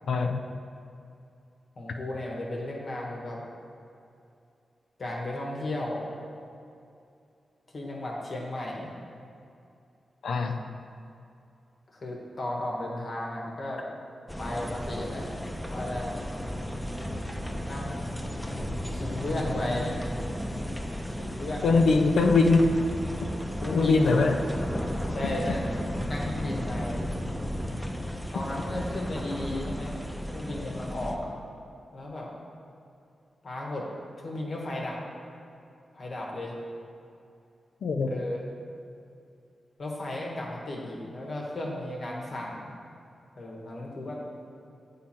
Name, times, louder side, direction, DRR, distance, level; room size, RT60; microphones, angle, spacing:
voice 1, 0.1-0.4 10.2-10.6 21.6-22.7 23.7-24.4 37.8-38.1, left 3 dB, 85° left, 4 dB, 0.4 m, -22 dB
voice 2, 1.8-3.4 5.0-6.1 7.7-8.9 11.9-13.8 14.4-15.3 15.7-16.1 17.6-18.1 18.9-19.9 21.2-22.1 23.6-24.1 25.1-25.7 26.0-27.0 28.3-29.9 30.3-31.3 31.9-32.3 33.4-33.9 34.2-35.0 35.9-36.6 38.1-38.4 39.8-42.7 43.4-44.2, left 1 dB, 60° left, -2 dB, 1.2 m, -34 dB
sound 1, 14.3-31.2, equal, 5° left, 0.6 m, -34 dB
7.4 x 3.7 x 4.3 m, 2.6 s
cardioid pair, 55°, 0 cm